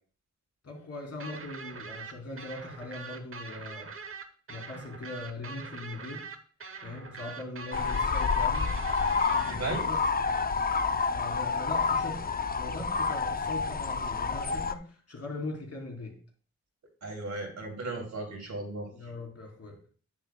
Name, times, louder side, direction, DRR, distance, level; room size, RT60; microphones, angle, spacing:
voice 1, 0.6-3.9 4.5-6.3 6.8-8.7 9.2-10.0 11.1-16.2 18.9-19.8, left 2 dB, 55° left, 1 dB, 3.2 m, -41 dB
sound 1, 1.2-9.6, right 5 dB, 45° right, 1.0 m, -43 dB
sound 2, 7.7-14.7, left 5 dB, 30° left, 0.5 m, -29 dB
voice 2, 9.4-9.9 17.0-18.9, right 2 dB, 65° right, 1 dB, 3.2 m, -35 dB
9.5 x 9.0 x 2.3 m, 0.42 s
wide cardioid pair, 95°, 30 cm